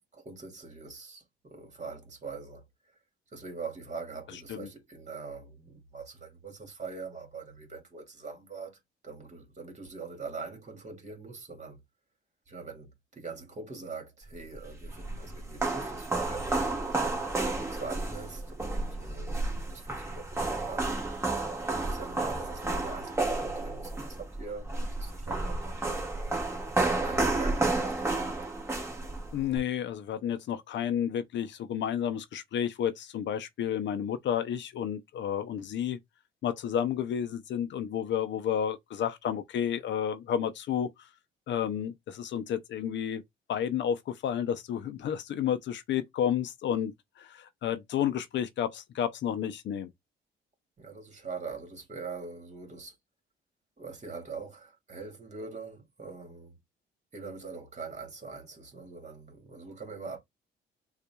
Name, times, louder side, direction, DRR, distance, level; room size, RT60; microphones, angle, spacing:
voice 1, 0.1-2.7 3.3-8.8 9.0-11.8 12.5-16.6 17.6-21.0 21.7-25.9 27.0-28.3 50.8-53.0 53.8-56.5 57.1-60.2, right 4 dB, 35° right, 2.1 m, -43 dB
sound 1, 14.6-29.6, right 2 dB, 15° right, 1.5 m, -31 dB
voice 2, 29.3-36.0 36.4-40.9 41.5-43.2 43.5-49.9, left 9 dB, 65° left, 0.6 m, -31 dB
6.7 x 2.5 x 2.3 m
cardioid pair, 90°, 20 cm